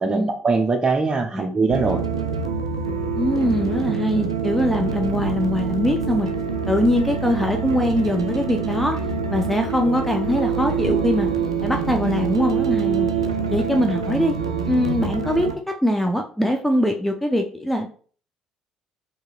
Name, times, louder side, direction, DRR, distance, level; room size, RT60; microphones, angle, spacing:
voice 1, 0.0-2.0, right 3 dB, 30° right, 4 dB, 0.9 m, -21 dB
sound 1, 1.7-15.5, right 6 dB, 90° right, 0.4 m, -25 dB
voice 2, 3.2-6.3 6.7-9.0 9.3-11.3 11.6-13.1 13.5-14.3 14.7-17.9, equal, 5° left, 3 dB, 0.6 m, -22 dB
4.6 x 2.8 x 2.5 m, 0.43 s
figure-of-eight pair, 50°, 3 cm